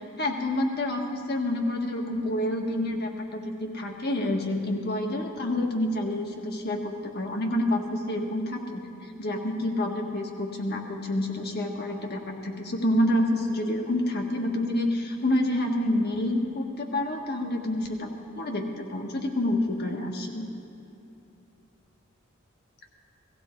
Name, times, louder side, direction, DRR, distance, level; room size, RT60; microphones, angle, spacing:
voice 1, 0.2-8.8 9.2-20.5, left 1 dB, 50° left, 2 dB, 1.6 m, -28 dB
17.5 x 15.5 x 4.5 m, 2.8 s
head